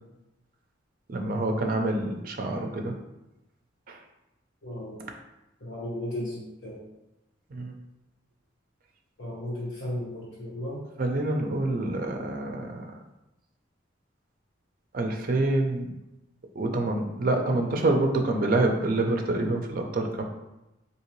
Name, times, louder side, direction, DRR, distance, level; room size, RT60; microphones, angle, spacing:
voice 1, 1.1-2.9 3.9-4.0 7.5-7.7 11.0-12.8 14.9-15.9 16.6-20.2, right 2 dB, 45° right, 3 dB, 0.4 m, -26 dB
voice 2, 4.6-5.0 5.6-6.8 9.2-10.8, left 1 dB, 75° left, -9 dB, 1.1 m, -35 dB
3.7 x 2.8 x 3.0 m, 0.95 s
head